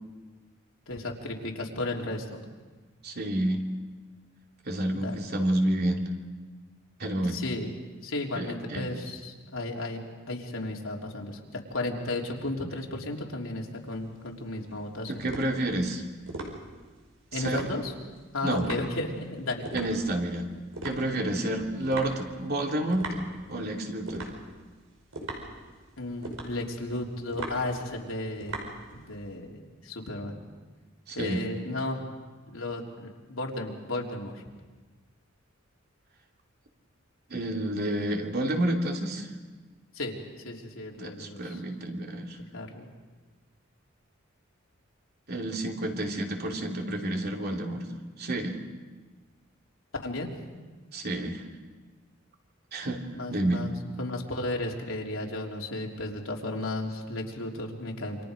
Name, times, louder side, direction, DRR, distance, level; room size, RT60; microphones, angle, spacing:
voice 1, 0.9-2.4 4.9-5.2 7.3-7.7 8.0-10.0 10.3-15.2 17.3-17.9 18.3-19.7 26.0-28.6 28.9-30.3 31.1-32.1 32.5-34.4 39.9-40.2 40.4-41.6 42.5-42.9 50.0-50.3 53.1-58.2, left 2 dB, 85° left, -1 dB, 3.3 m, -34 dB
voice 2, 3.0-3.6 4.7-6.0 7.0-7.4 8.3-8.9 15.1-16.0 17.3-17.7 18.4-18.7 19.7-20.5 20.8-23.1 23.5-24.3 31.1-31.4 37.3-39.3 41.0-42.4 45.3-47.9 48.2-48.6 50.9-51.4 52.7-53.0 53.3-53.7, right 1 dB, 50° right, 1 dB, 2.9 m, -29 dB
sound 1, 13.8-29.3, right 2 dB, 85° right, 5.3 m, -41 dB
28.5 x 26.0 x 5.2 m, 1.3 s
head